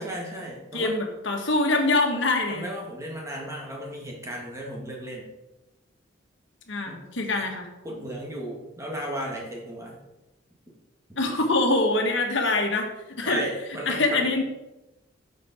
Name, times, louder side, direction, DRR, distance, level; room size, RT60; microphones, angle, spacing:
voice 1, 0.0-0.9 2.5-5.3 6.9-7.0 7.3-7.4 7.8-10.0 13.2-14.3, right 1 dB, 15° right, -2 dB, 2.3 m, -35 dB
voice 2, 0.7-2.6 6.7-7.7 11.2-13.4 13.8-14.4, left 2 dB, 65° left, 3 dB, 1.7 m, -24 dB
9.5 x 7.1 x 4.5 m, 0.98 s
head